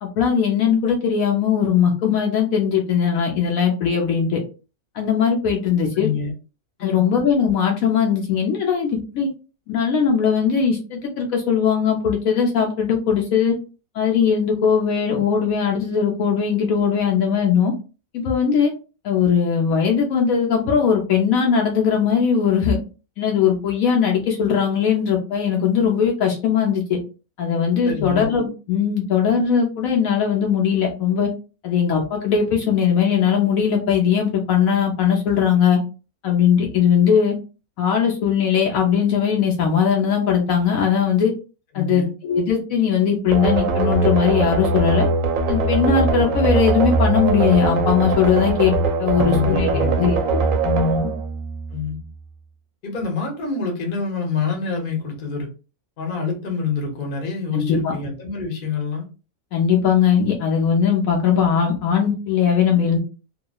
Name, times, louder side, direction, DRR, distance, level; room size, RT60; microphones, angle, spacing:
voice 1, 0.0-4.4 4.9-6.1 6.8-9.3 9.7-13.5 13.9-17.7 18.1-18.7 19.0-22.8 23.2-27.0 27.4-31.3 31.6-35.8 36.2-37.3 37.8-41.3 41.7-45.1 45.5-50.2 50.6-51.1 57.5-57.9 59.5-63.0, left 7 dB, 70° left, 0 dB, 1.0 m, -19 dB
voice 2, 5.9-6.3 6.8-7.1 27.8-28.3 41.7-42.1 49.1-50.0 51.7-52.0 52.8-55.5 56.0-59.1, left 5 dB, 40° left, 1 dB, 0.8 m, -26 dB
sound 1, 43.3-52.0, right 3 dB, 70° right, 0.9 m, -21 dB
2.9 x 2.2 x 2.2 m, 0.33 s
omnidirectional pair, 1.6 m